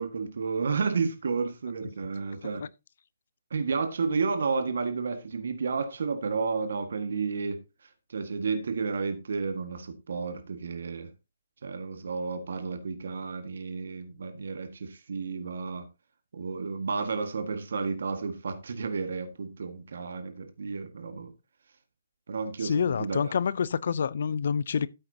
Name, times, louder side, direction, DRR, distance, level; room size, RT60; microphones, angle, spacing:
voice 1, 0.0-2.7 3.5-11.1 11.6-15.9 16.3-21.3 22.3-23.3, right 4 dB, 65° right, 1.7 m, -32 dB
voice 2, 22.6-24.9, left 6 dB, 60° left, 0.6 m, -27 dB
13.0 x 9.1 x 2.8 m
figure-of-eight pair, 140°, 0 cm